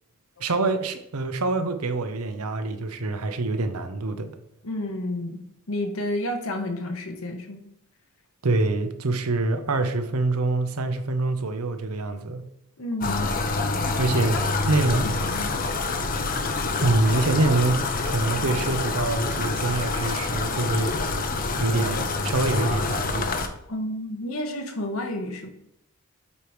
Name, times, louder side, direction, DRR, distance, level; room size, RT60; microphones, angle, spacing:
voice 1, 0.4-4.3 8.4-12.4 14.0-15.1 16.8-21.2 21.6-23.3, right 2 dB, 90° right, 8 dB, 0.8 m, -25 dB
voice 2, 4.6-7.6 12.8-13.3 14.6-14.7 15.0-15.5 23.7-25.5, left 1 dB, 70° left, 4 dB, 1.2 m, -31 dB
sound 1, 13.0-23.5, left 3 dB, 40° left, 0.7 m, -27 dB
8.3 x 3.1 x 4.9 m, 0.78 s
head